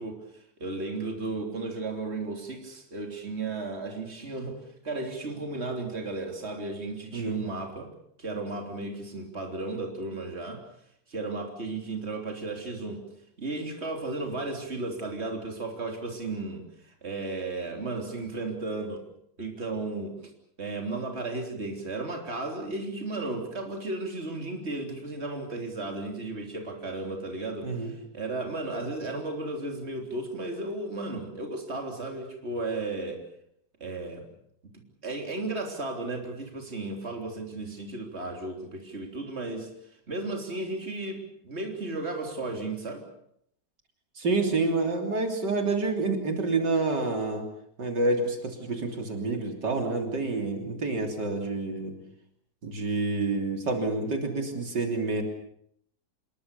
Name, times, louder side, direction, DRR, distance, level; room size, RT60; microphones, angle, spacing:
voice 1, 0.0-7.9 8.2-10.6 11.1-13.0 13.4-19.0 19.4-20.3 20.6-33.2 33.8-34.3 34.7-39.7 40.1-43.0, right 2 dB, 35° right, 2 dB, 3.7 m, -34 dB
voice 2, 44.2-47.4 47.8-52.0 52.6-55.2, right 3 dB, 80° right, 3 dB, 3.9 m, -28 dB
26.5 x 22.0 x 6.9 m, 0.72 s
omnidirectional pair, 1.8 m